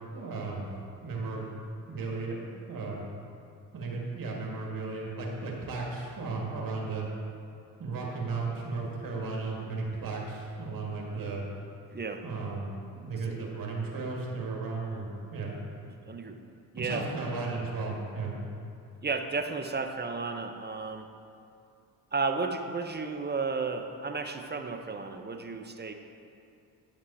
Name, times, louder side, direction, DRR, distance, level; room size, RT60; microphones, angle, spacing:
voice 1, 0.1-0.7 1.0-1.6 1.9-2.4 2.7-3.0 3.7-7.1 7.8-11.5 12.2-15.5 16.8-18.4, right 3 dB, 50° right, -2 dB, 2.0 m, -35 dB
voice 2, 11.9-12.2 13.1-13.2 15.9-16.4 16.7-17.1 19.0-21.1 22.1-25.9, right 4 dB, 20° right, 6 dB, 0.7 m, -33 dB
9.4 x 6.0 x 4.2 m, 2.5 s
hypercardioid pair, 50°, 45 cm